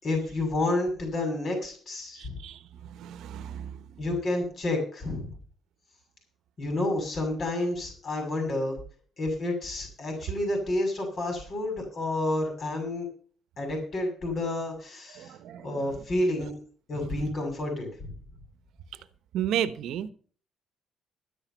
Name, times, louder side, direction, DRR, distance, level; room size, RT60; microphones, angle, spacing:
voice 1, 0.0-2.4 4.0-5.3 6.6-8.8 9.2-13.1 13.6-15.3 15.6-16.5 16.9-18.1, left 2 dB, 50° left, 3 dB, 6.8 m, -30 dB
voice 2, 2.2-2.6 2.9-3.8 15.1-15.7 19.3-20.1, right 10 dB, 80° right, 14 dB, 1.0 m, -32 dB
13.0 x 10.5 x 5.6 m, 0.43 s
cardioid pair, 90°, 0 cm